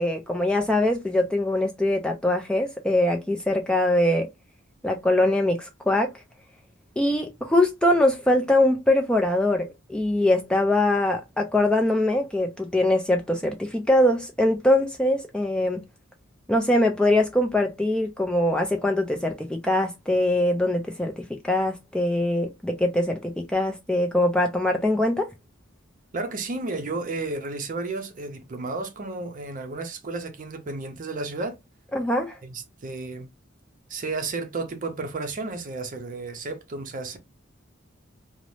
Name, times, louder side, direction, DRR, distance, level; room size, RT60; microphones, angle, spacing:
voice 1, 0.0-4.3 4.8-6.1 7.0-15.8 16.5-25.3 31.9-32.4, left 1 dB, 5° left, 0.3 m, -22 dB
voice 2, 26.1-31.6 32.4-33.3 33.9-37.2, right 3 dB, 40° right, 0.6 m, -32 dB
2.6 x 2.0 x 3.0 m
head